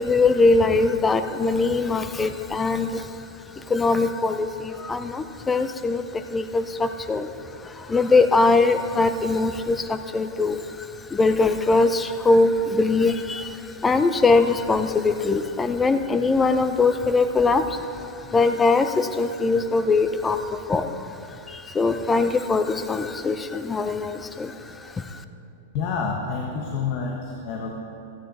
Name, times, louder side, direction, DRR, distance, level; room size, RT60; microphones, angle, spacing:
voice 1, 0.0-3.1 3.5-7.3 7.6-21.1 21.5-25.2, left 3 dB, 15° left, 10 dB, 0.6 m, -22 dB
voice 2, 25.7-27.7, left 5 dB, 50° left, 1 dB, 1.2 m, -28 dB
14.5 x 9.1 x 4.2 m, 3.0 s
hypercardioid pair, 115°, 0 cm